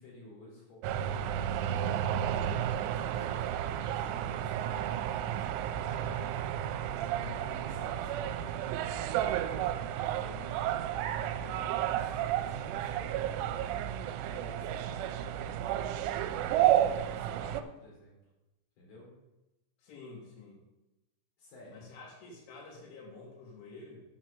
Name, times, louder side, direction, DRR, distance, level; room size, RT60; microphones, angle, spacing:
voice 1, 0.0-1.6 1.9-6.4 7.2-10.9 11.2-13.9 14.2-15.8 16.4-18.2 18.8-19.1 21.4-21.8, left 1 dB, 55° left, -4 dB, 5.2 m, -53 dB
sound 1, 0.8-17.6, right 11 dB, 85° right, 3.0 m, -32 dB
voice 2, 7.1-7.6 19.8-20.6 21.7-24.0, left 3 dB, 75° left, -2 dB, 5.3 m, -49 dB
9.4 x 6.1 x 7.0 m, 0.98 s
omnidirectional pair, 5.6 m